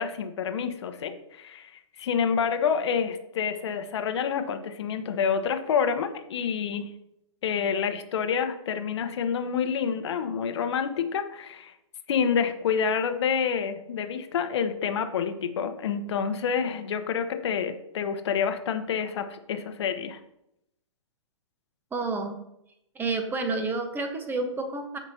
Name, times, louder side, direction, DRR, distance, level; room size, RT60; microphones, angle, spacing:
voice 1, 0.0-6.9 7.4-11.7 12.1-20.2, left 7 dB, 60° left, 8 dB, 1.1 m, -28 dB
voice 2, 21.9-22.3 22.9-25.0, right 3 dB, 15° right, 6 dB, 1.2 m, -29 dB
15.5 x 5.2 x 2.9 m, 0.82 s
hypercardioid pair, 125°, 16 cm